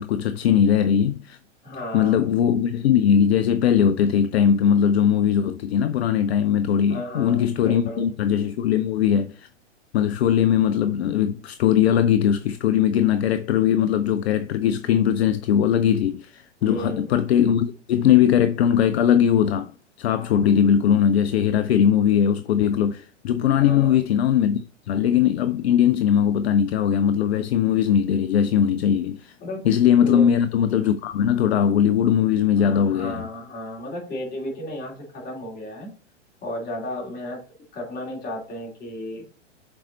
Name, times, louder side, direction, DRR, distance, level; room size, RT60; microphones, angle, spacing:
voice 1, 0.0-1.4 1.9-9.5 9.9-19.7 20.0-29.3 29.6-33.2, left 9 dB, 60° left, 0.6 m, -20 dB
voice 2, 1.6-2.3 6.9-8.1 16.6-17.1 23.5-24.0 29.4-29.7 30.0-30.3 32.5-35.9 36.4-37.4 37.7-39.2, left 1 dB, 25° left, 3.1 m, -33 dB
7.3 x 4.4 x 3.9 m
figure-of-eight pair, 105°, 36 cm